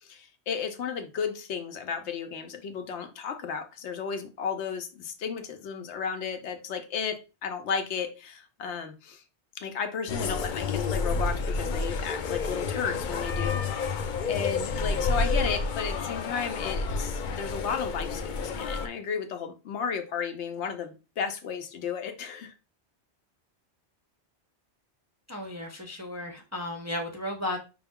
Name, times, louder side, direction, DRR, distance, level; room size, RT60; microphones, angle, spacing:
voice 1, 0.0-9.2 9.5-14.0 14.3-22.5, left 6 dB, 85° left, 1.0 m, -34 dB
sound 1, 10.1-18.9, left 4 dB, 60° left, 0.6 m, -30 dB
voice 2, 25.3-27.6, left 1 dB, 20° right, 0.4 m, -34 dB
5.2 x 2.3 x 3.5 m
omnidirectional pair, 1.1 m